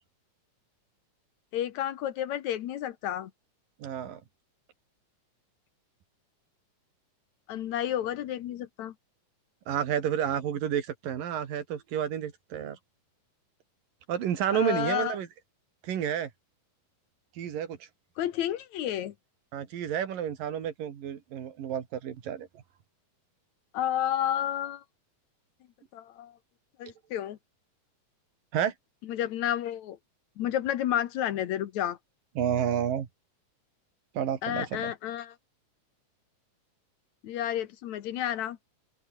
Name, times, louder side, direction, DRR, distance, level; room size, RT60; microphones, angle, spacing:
voice 1, 1.5-3.3 7.5-8.9 14.5-15.2 18.2-19.1 23.7-24.8 25.9-26.3 26.8-27.4 29.1-30.0 30.4-32.0 34.4-35.4 37.2-38.6, left 11 dB, 65° left, 2.2 m, -31 dB
voice 2, 3.8-4.2 9.7-12.8 14.1-15.3 15.8-16.3 17.4-17.8 19.5-22.5 28.5-28.7 32.4-33.1 34.2-34.9, right 9 dB, 90° right, 4.0 m, -30 dB
open air
omnidirectional pair, 3.8 m